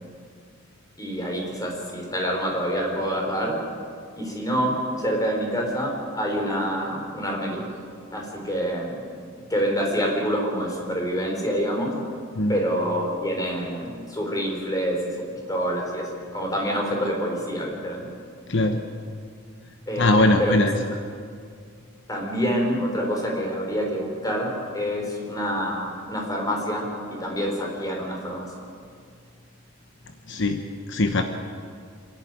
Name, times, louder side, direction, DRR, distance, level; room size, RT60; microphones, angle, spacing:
voice 1, 1.0-3.6 4.1-7.7 8.1-8.9 9.5-11.9 12.5-15.2 15.5-18.1 19.9-20.7 22.1-28.5, equal, 20° left, 0 dB, 4.5 m, -27 dB
voice 2, 20.0-20.7 30.3-30.6 30.9-31.2, left 2 dB, 65° left, 6 dB, 1.1 m, -20 dB
26.5 x 11.5 x 9.3 m, 2.2 s
head